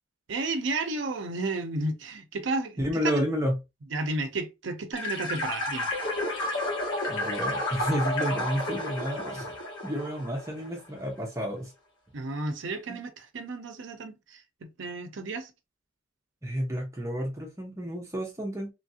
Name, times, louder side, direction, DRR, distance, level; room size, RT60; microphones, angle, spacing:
voice 1, 0.3-3.2 3.9-5.9 12.1-15.5, right 2 dB, 70° right, 0.5 m, -32 dB
voice 2, 2.8-3.5 7.1-9.5 9.8-11.7 12.9-13.0 16.4-18.7, equal, 15° right, 0.6 m, -31 dB
sound 1, 4.9-10.7, left 1 dB, 75° left, 1.4 m, -31 dB
3.1 x 2.5 x 2.6 m
head